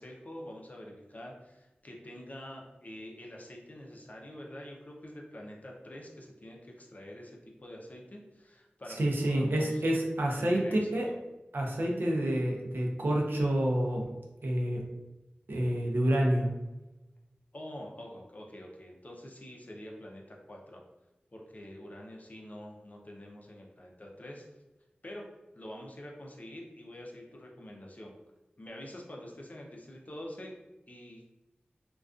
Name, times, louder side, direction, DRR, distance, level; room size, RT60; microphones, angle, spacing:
voice 1, 0.0-9.8 10.4-10.9 17.5-20.8 21.3-24.4 25.0-25.3 25.5-28.1 28.6-30.5 30.9-31.2, left 1 dB, 45° left, -1 dB, 0.5 m, -46 dB
voice 2, 9.0-11.1 11.5-14.1 14.4-14.8 15.5-16.5, right 1 dB, 75° right, -1 dB, 0.5 m, -28 dB
2.4 x 2.2 x 2.4 m, 1.0 s
wide cardioid pair, 65°, 4 cm